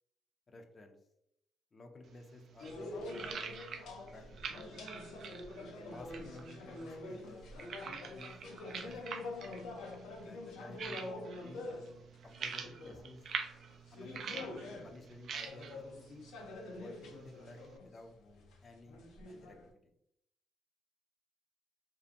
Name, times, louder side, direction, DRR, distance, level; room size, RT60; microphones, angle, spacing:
voice 1, 0.5-1.0 1.7-3.7 4.0-4.6 5.9-7.4 7.8-8.3 8.7-9.0 9.4-9.5 10.2-11.7 12.2-13.2 13.9-14.3 14.8-15.8 16.1-16.2 16.7-18.1 18.6-19.9, left 2 dB, 35° left, 5 dB, 0.4 m, -54 dB
sound 1, 2.0-17.8, right 6 dB, 65° right, 0.3 m, -47 dB
sound 2, 2.6-15.1 15.4-19.7, left 2 dB, 85° left, 0.5 m, -46 dB
2.6 x 2.5 x 2.4 m, 0.77 s
cardioid pair, 90°, 0 cm